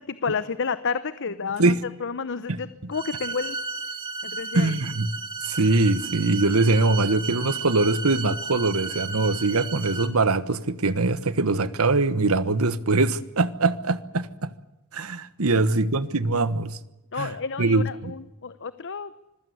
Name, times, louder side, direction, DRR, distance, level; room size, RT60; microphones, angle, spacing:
voice 1, 0.0-1.7 2.0-3.6 4.2-4.8 17.1-19.1, left 5 dB, 55° left, 0.9 m, -30 dB
sound 1, 2.9-10.1, right 4 dB, 25° right, 3.3 m, -34 dB
voice 2, 4.5-5.1 5.4-14.5 14.9-16.8 17.2-17.3 17.6-18.1, right 3 dB, 75° right, 1.3 m, -22 dB
26.0 x 15.5 x 9.6 m
head